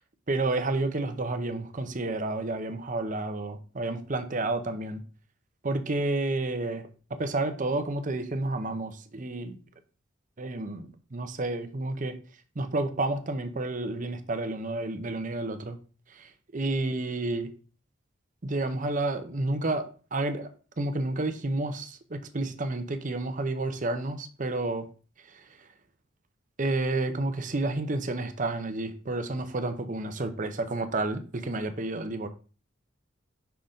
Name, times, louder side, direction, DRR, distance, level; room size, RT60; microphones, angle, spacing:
voice 1, 0.3-5.0 5.6-9.6 10.4-12.1 12.6-15.8 16.1-17.5 18.4-20.5 20.8-24.9 25.3-25.7 26.6-32.3, right 2 dB, 40° right, 0.7 m, -30 dB
5.8 x 4.0 x 5.1 m
head